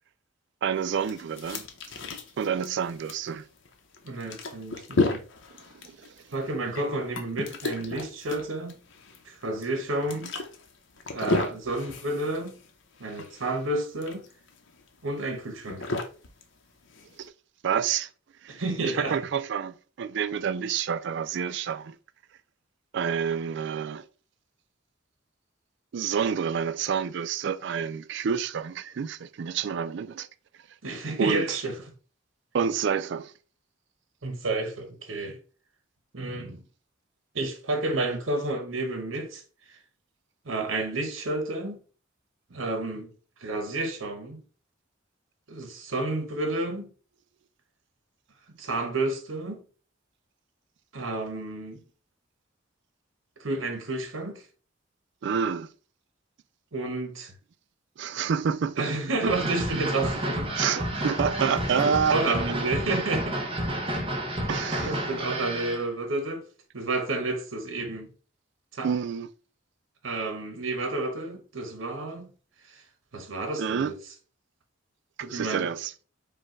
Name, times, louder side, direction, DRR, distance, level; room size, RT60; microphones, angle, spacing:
voice 1, 0.6-1.6 2.4-3.4 5.8-6.0 17.2-17.3 17.6-18.1 18.4-22.0 22.9-24.0 25.9-30.3 31.2-31.5 32.5-33.3 55.2-55.7 58.0-58.9 60.5-62.3 64.5-65.0 68.8-69.3 73.6-73.9 75.3-75.9, right 7 dB, 60° right, 0.4 m, -28 dB
sound 1, 0.8-17.3, left 3 dB, 65° left, 0.8 m, -34 dB
voice 2, 4.0-5.2 6.3-8.8 9.2-10.3 11.1-12.5 13.0-14.2 15.0-15.9 18.5-19.2 30.8-31.7 34.2-35.4 36.1-36.6 37.3-39.4 40.4-41.8 42.5-43.1 43.4-44.4 45.5-46.9 48.6-49.6 50.9-51.8 53.4-54.4 56.7-57.3 58.8-60.5 61.4-61.5 61.8-63.4 64.8-66.4 66.7-68.1 68.7-68.9 70.0-72.3 73.1-73.9 75.2-75.7, right 2 dB, 85° right, 1.0 m, -30 dB
sound 2, 59.3-65.8, right 1 dB, 30° right, 0.9 m, -30 dB
5.1 x 2.3 x 4.4 m
head